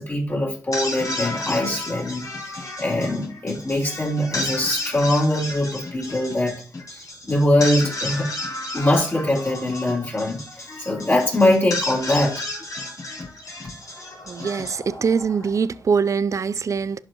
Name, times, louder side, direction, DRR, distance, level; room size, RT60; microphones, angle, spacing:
voice 1, 0.0-2.2 2.5-6.6 6.9-8.3 8.7-10.4 10.8-12.4, left 1 dB, 30° left, 3.7 m, -22 dB
sound 1, 0.5-15.8, left 2 dB, 50° left, 3.2 m, -32 dB
voice 2, 14.3-17.0, right 6 dB, 45° right, 0.4 m, -23 dB
11.5 x 5.0 x 2.9 m
cardioid pair, 55°, 8 cm